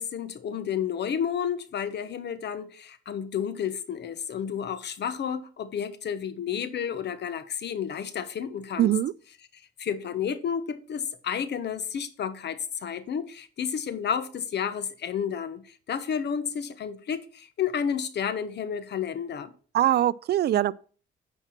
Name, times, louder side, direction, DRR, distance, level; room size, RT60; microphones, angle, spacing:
voice 1, 0.0-8.9 9.5-19.5, left 8 dB, 60° left, 1.1 m, -31 dB
voice 2, 8.8-9.1 19.7-20.7, right 12 dB, 55° right, 0.4 m, -22 dB
9.8 x 4.6 x 5.8 m
cardioid pair, 90°, 20 cm